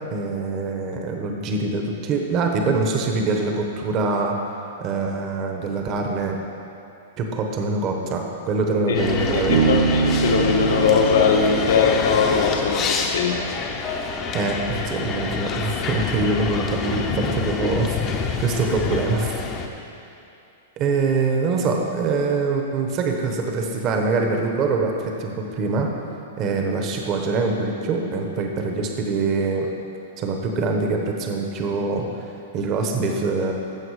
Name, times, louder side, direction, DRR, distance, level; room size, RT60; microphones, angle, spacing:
voice 1, 0.1-4.4 4.8-6.4 7.2-9.7 14.3-19.3 20.8-25.9 26.4-29.7 30.2-32.1 32.5-33.5, right 3 dB, 25° right, 2 dB, 1.0 m, -24 dB
voice 2, 8.9-14.0, left 5 dB, 80° left, 2 dB, 1.3 m, -21 dB
sound 1, 8.9-19.7, left 5 dB, 20° left, 0.7 m, -27 dB
Bass guitar, 9.5-13.0, right 6 dB, 55° right, 0.9 m, -24 dB
14.5 x 6.5 x 4.9 m, 2.7 s
supercardioid pair, 170°, 0 cm